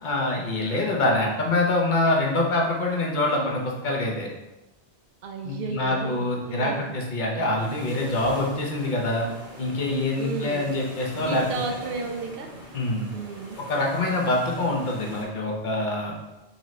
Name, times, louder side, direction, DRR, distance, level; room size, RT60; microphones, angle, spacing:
voice 1, 0.0-4.3 5.4-9.3 9.6-11.4 12.7-13.1 13.7-16.1, left 2 dB, 45° left, -1 dB, 0.9 m, -25 dB
voice 2, 5.2-7.0 10.2-10.7 11.2-12.5 13.1-13.6, right 4 dB, 65° right, 3 dB, 0.7 m, -33 dB
sound 1, 7.6-15.2, right 1 dB, 45° right, 1.3 m, -42 dB
4.1 x 3.7 x 3.1 m, 1.0 s
omnidirectional pair, 1.2 m